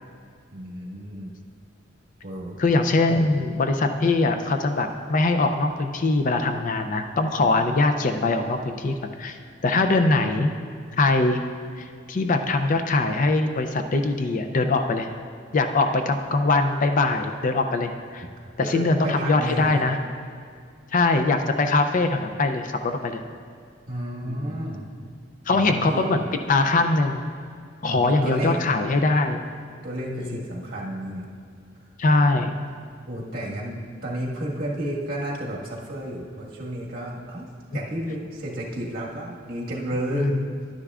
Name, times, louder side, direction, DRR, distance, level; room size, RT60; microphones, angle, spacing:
voice 1, 0.5-1.4 2.2-2.6 3.1-3.2 18.6-19.8 23.9-24.9 25.5-26.0 27.8-28.7 29.8-31.3 33.0-37.5 37.7-40.3, right 1 dB, 50° right, -4 dB, 1.6 m, -32 dB
voice 2, 2.6-9.4 9.6-10.5 11.0-11.4 11.8-15.1 15.5-18.3 18.6-20.0 20.9-23.2 24.3-24.5 25.5-26.2 26.5-27.2 27.8-29.4 30.1-30.4 32.0-32.5 40.1-40.5, left 3 dB, 45° left, 7 dB, 0.4 m, -22 dB
11.0 x 9.9 x 2.4 m, 2.2 s
head